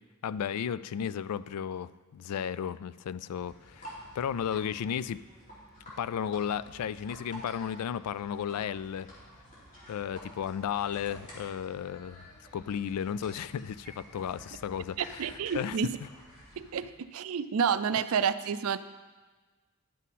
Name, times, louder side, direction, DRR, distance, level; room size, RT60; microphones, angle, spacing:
voice 1, 0.2-5.2 6.0-9.1 9.9-12.2 12.5-15.3 15.5-15.9, left 8 dB, 85° left, 17 dB, 0.3 m, -34 dB
sound 1, 3.4-16.9, equal, 35° left, 3.3 m, -50 dB
voice 2, 15.0-15.9 16.6-18.8, right 7 dB, 65° right, 14 dB, 0.4 m, -29 dB
10.5 x 7.3 x 4.2 m, 1.3 s
head